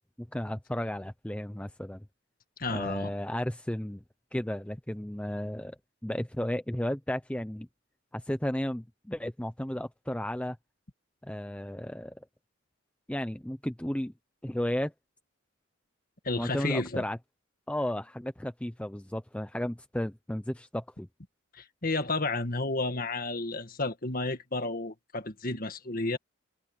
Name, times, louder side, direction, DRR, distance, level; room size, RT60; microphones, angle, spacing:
voice 1, 0.2-2.0 2.7-4.0 4.3-7.7 8.1-10.6 11.2-12.2 13.1-14.1 14.4-14.9 16.3-17.2 17.7-21.1, left 1 dB, 5° left, 0.6 m, -34 dB
voice 2, 2.6-3.1 16.2-17.0 21.5-26.2, left 2 dB, 45° left, 1.9 m, -31 dB
head